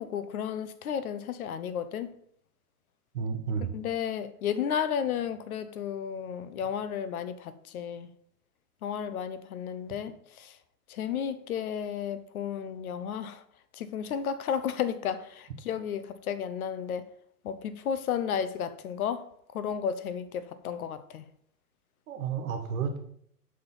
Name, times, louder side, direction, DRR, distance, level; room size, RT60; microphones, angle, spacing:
voice 1, 0.0-2.1 3.7-8.1 8.8-10.1 10.4-10.6 10.9-13.4 13.7-17.1 17.4-19.3 19.5-21.2, left 8 dB, 65° left, 0.8 m, -33 dB
voice 2, 3.1-3.8 22.1-23.0, right 6 dB, 55° right, 1.4 m, -31 dB
6.6 x 3.6 x 5.5 m
hypercardioid pair, 140°, 47 cm